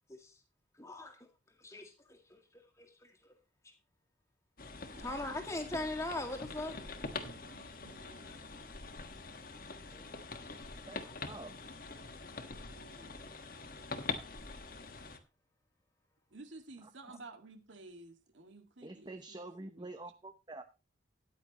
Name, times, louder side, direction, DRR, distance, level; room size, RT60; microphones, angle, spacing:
voice 1, 0.8-1.2 1.6-3.3 3.6-3.7 5.0-6.8 8.3-8.4 9.9-10.1, left 2 dB, 15° left, 1.9 m, -41 dB
sound 1, 4.6-15.2, left 4 dB, 45° left, 1.4 m, -44 dB
voice 2, 4.9-5.4 7.1-8.3 12.0-13.2 16.3-19.9, right 2 dB, 75° right, 2.0 m, -54 dB
voice 3, 16.8-17.2 18.8-20.6, right 2 dB, 20° right, 0.7 m, -47 dB
14.0 x 10.0 x 3.0 m
head